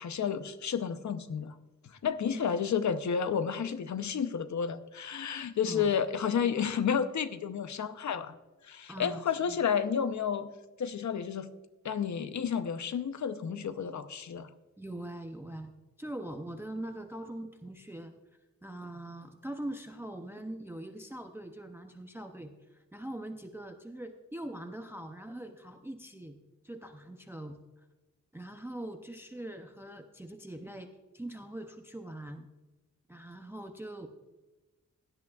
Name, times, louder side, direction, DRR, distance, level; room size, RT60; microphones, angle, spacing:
voice 1, 0.0-1.5 1.8-8.4 8.6-10.5 10.8-11.5 11.8-14.5, left 7 dB, 60° left, 11 dB, 0.7 m, -31 dB
voice 2, 8.9-9.6 14.8-15.7 16.0-18.1 18.6-26.4 26.6-27.9 28.3-30.9 31.1-32.5 33.1-34.1, right 1 dB, 5° right, 6 dB, 0.5 m, -42 dB
17.0 x 11.0 x 2.4 m, 1.1 s
wide cardioid pair, 165°, 33 cm